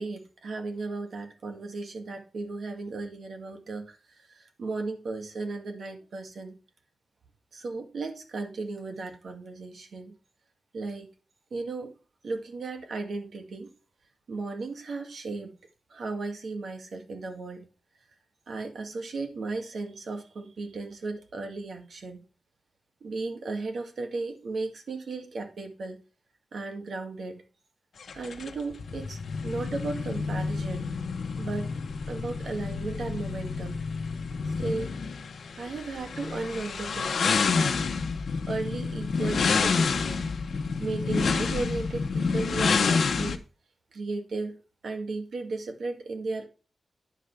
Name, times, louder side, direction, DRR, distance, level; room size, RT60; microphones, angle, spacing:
voice 1, 0.0-4.0 4.3-6.6 7.5-10.1 10.7-11.1 11.5-11.9 12.2-13.7 14.3-15.6 15.9-17.7 18.5-22.2 23.0-26.0 26.5-27.4 28.1-30.9 31.4-31.7 32.1-33.8 34.6-34.9 35.6-37.8 38.5-40.2 40.8-43.4 43.9-44.5 44.8-46.5, right 3 dB, 65° right, 4 dB, 1.8 m, -35 dB
sound 1, 28.0-43.4, left 5 dB, 70° left, 1.0 m, -29 dB
10.5 x 5.1 x 5.8 m, 0.35 s
wide cardioid pair, 155°, 0 cm